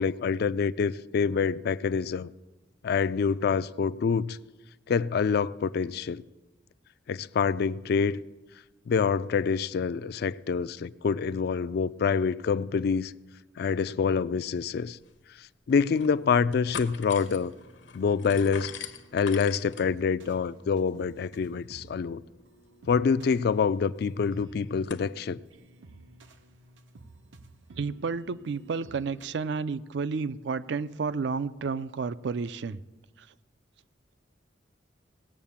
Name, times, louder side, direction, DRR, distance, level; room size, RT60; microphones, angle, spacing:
voice 1, 0.0-2.3 2.8-4.4 4.9-6.2 7.1-8.2 8.9-13.1 13.6-15.0 15.7-17.5 17.9-18.7 19.1-22.2 22.9-25.4, left 5 dB, 55° left, 0.3 m, -26 dB
ice machine, 14.7-14.8 15.1-15.2 15.7-16.2 16.5-25.1, left 6 dB, 75° left, 0.8 m, -45 dB
sound 1, 17.1-29.3, right 2 dB, 85° right, 0.8 m, -53 dB
voice 2, 27.8-32.8 33.2-33.3, right 5 dB, 65° right, 0.4 m, -31 dB
18.0 x 7.4 x 7.1 m
head